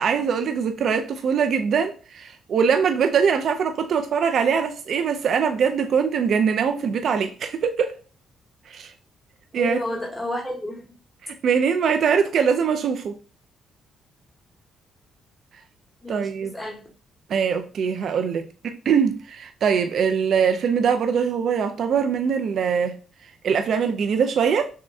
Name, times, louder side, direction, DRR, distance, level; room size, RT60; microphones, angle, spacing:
voice 1, 0.0-8.0 8.7-8.9 9.5-9.8 11.2-13.1 16.1-16.5 17.3-23.0 23.4-24.7, right 6 dB, 60° right, 0.4 m, -22 dB
voice 2, 9.5-10.9 16.0-16.9, left 1 dB, ahead, 1.0 m, -31 dB
6.2 x 2.1 x 2.6 m
cardioid pair, 90°, 0 cm